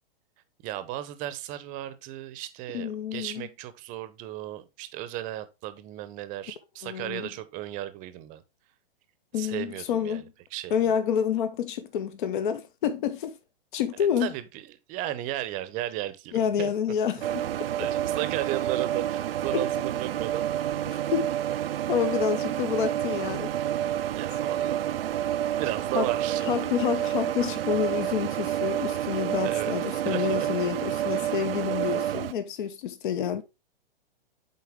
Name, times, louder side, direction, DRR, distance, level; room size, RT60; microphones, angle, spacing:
voice 1, 0.6-8.4 9.4-10.2 10.5-10.9 14.2-16.7 17.8-20.5 20.7-20.8 24.1-24.9 25.6-26.7 29.4-29.8 30.1-30.5 31.1-31.3, right 14 dB, 25° right, 0.8 m, -35 dB
voice 2, 2.7-3.5 6.8-7.3 9.3-10.2 10.7-13.3 13.7-14.3 16.3-17.5 19.5-19.6 20.9-21.3 21.9-23.6 25.9-26.1 26.5-33.4, left 8 dB, 55° left, 1.0 m, -28 dB
sound 1, 17.2-32.3, right 11 dB, 75° right, 0.5 m, -29 dB
8.0 x 4.1 x 3.5 m
hypercardioid pair, 130°, 29 cm